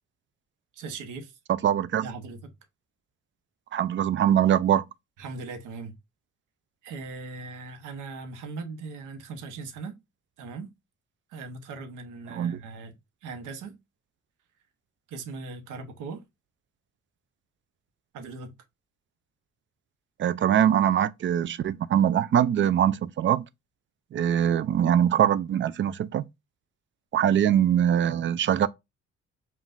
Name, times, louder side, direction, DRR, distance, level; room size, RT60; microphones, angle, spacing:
voice 1, 0.7-1.4 2.0-2.4 5.2-6.0 6.8-10.0 10.4-10.7 11.3-12.9 13.2-13.8 15.1-16.2 18.1-18.5 27.3-27.4, right 4 dB, 90° right, 1.0 m, -39 dB
voice 2, 1.5-2.1 3.7-4.9 12.3-12.6 20.2-23.4 24.1-26.2 27.1-28.7, right 10 dB, 40° right, 0.4 m, -23 dB
5.6 x 2.5 x 2.5 m
cardioid pair, 90°, 30 cm